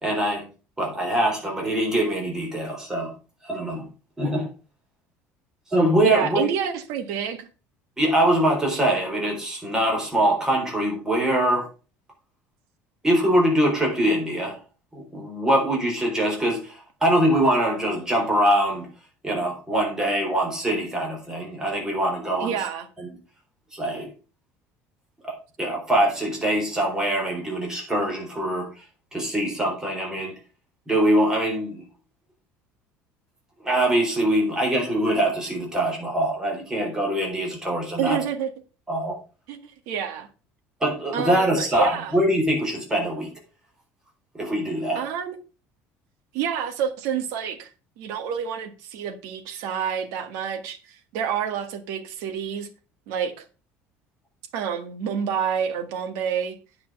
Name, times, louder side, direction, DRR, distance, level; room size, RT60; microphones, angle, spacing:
voice 1, 0.0-0.4 0.8-3.1 3.4-3.8 4.2-4.5 5.7-6.5 8.0-11.7 13.0-14.6 14.9-18.9 19.2-22.5 23.7-24.1 25.2-28.7 29.1-30.3 30.9-31.8 33.6-38.2 38.9-39.2 40.8-43.3 44.4-45.0, right 1 dB, 10° right, 3.7 m, -23 dB
voice 2, 6.0-7.5 22.4-22.9 38.0-38.5 39.5-40.3 41.1-42.1 45.0-45.4 46.3-47.7 48.0-52.7 53.1-53.4 54.5-56.6, right 8 dB, 75° right, 1.8 m, -28 dB
9.9 x 5.8 x 5.4 m
cardioid pair, 165°, 5 cm